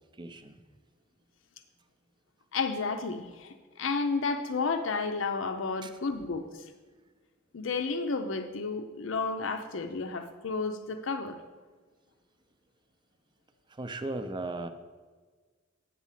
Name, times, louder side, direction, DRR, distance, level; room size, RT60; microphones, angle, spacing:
voice 1, 0.2-0.6 5.8-6.0 13.7-14.7, right 2 dB, 25° right, 9 dB, 0.6 m, -37 dB
voice 2, 2.5-6.6 7.5-11.4, left 4 dB, 70° left, 7 dB, 0.6 m, -32 dB
9.6 x 4.1 x 7.4 m, 1.4 s
head